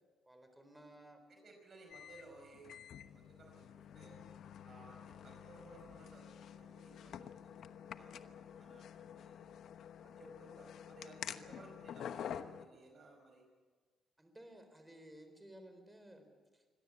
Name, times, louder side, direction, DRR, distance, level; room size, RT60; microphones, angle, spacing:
voice 1, 0.2-1.2 11.2-11.7 14.2-16.3 16.5-16.6, right 1 dB, 10° right, 6 dB, 4.0 m, -57 dB
voice 2, 1.3-2.7 3.0-4.2 4.6-9.5 10.0-13.4, right 2 dB, 50° right, 2 dB, 5.2 m, -59 dB
sound 1, 1.9-12.7, left 9 dB, 70° left, 1.1 m, -49 dB
25.0 x 17.5 x 8.3 m, 1.4 s
cardioid pair, 90°, 0 cm